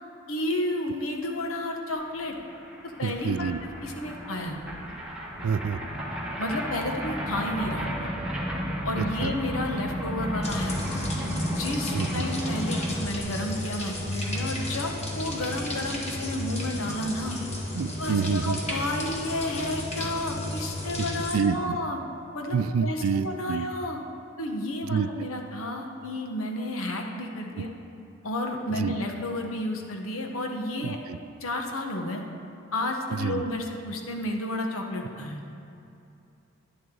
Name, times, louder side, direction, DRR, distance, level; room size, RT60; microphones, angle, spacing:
voice 1, 0.3-2.3 2.8-4.6 6.4-8.1 8.8-11.1 11.5-17.4 18.0-22.0 22.3-24.0 24.4-27.7 28.2-31.0 31.4-32.2 32.7-35.4, left 1 dB, 85° left, 2 dB, 1.1 m, -31 dB
sound 1, 2.1-2.2 2.3-13.2, equal, 5° right, 1.4 m, -33 dB
voice 2, 3.0-3.6 5.4-5.8 9.0-9.3 11.9-12.2 17.7-18.6 21.3-21.8 22.5-23.7 24.9-25.1 28.7-28.9 30.8-31.2 33.1-33.4, right 6 dB, 85° right, 13 dB, 0.4 m, -27 dB
sound 2, 10.4-21.3, left 1 dB, 30° left, 1.3 m, -33 dB
11.0 x 10.5 x 3.8 m, 2.7 s
head